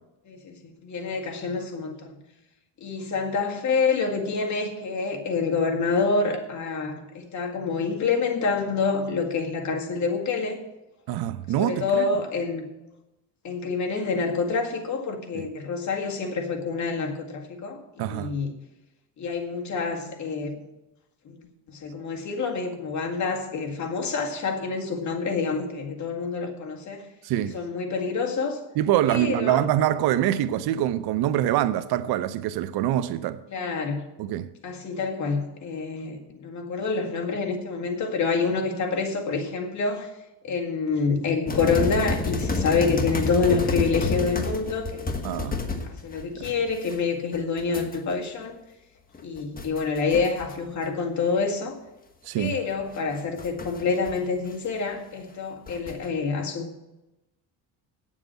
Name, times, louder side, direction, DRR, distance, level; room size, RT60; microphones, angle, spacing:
voice 1, 0.3-2.2 2.8-10.6 11.6-12.6 13.4-18.5 19.2-20.6 21.3-27.0 27.4-28.6 29.1-29.7 33.5-34.0 34.6-40.1 40.4-45.2 45.8-48.6 49.2-51.8 52.4-56.8, left 4 dB, 45° left, 2.0 m, -27 dB
voice 2, 11.1-12.1 15.3-15.5 18.0-18.3 27.2-27.6 28.8-33.4 34.2-34.5 45.2-45.6 46.3-46.5 52.3-52.6, right 12 dB, 65° right, 0.7 m, -25 dB
sound 1, 41.5-47.0 47.3-48.0 49.1-50.5 50.8-50.9 52.7-54.2 54.5-54.6 55.7-56.1, left 3 dB, 20° left, 1.3 m, -30 dB
9.0 x 7.4 x 8.1 m
cardioid pair, 115°, 40 cm